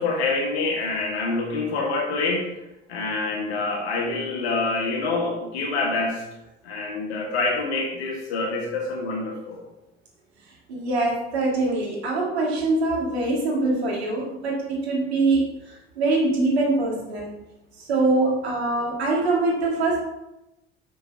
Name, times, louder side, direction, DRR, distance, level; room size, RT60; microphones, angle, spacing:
voice 1, 0.0-2.5 2.9-6.2 6.6-9.6, left 3 dB, 85° left, 1 dB, 1.5 m, -26 dB
voice 2, 10.7-17.3 17.8-20.0, right 2 dB, 90° right, -3 dB, 1.9 m, -23 dB
6.0 x 5.4 x 4.5 m, 0.91 s
hypercardioid pair, 55°, 31 cm